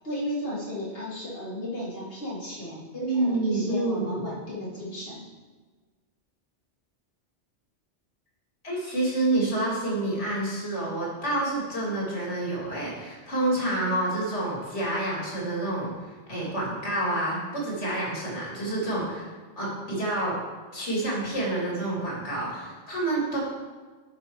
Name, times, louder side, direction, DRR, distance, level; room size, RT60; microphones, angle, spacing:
voice 1, 0.0-5.2, left 1 dB, 55° left, -6 dB, 2.5 m, -34 dB
voice 2, 3.0-4.2 8.6-15.9 16.3-20.4 20.7-23.4, right 2 dB, 80° left, -4 dB, 3.1 m, -28 dB
10.5 x 4.5 x 4.8 m, 1.4 s
omnidirectional pair, 1.2 m